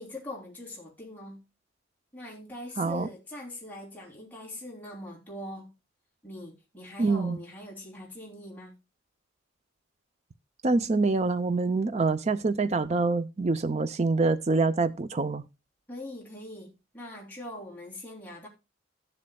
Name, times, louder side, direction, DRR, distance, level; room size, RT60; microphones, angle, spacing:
voice 1, 0.0-1.4 2.1-5.7 6.2-8.7 15.9-18.5, left 1 dB, 10° left, 3.1 m, -42 dB
voice 2, 2.8-3.1 7.0-7.4 10.6-15.4, right 3 dB, 30° right, 0.5 m, -25 dB
14.0 x 7.5 x 2.2 m
head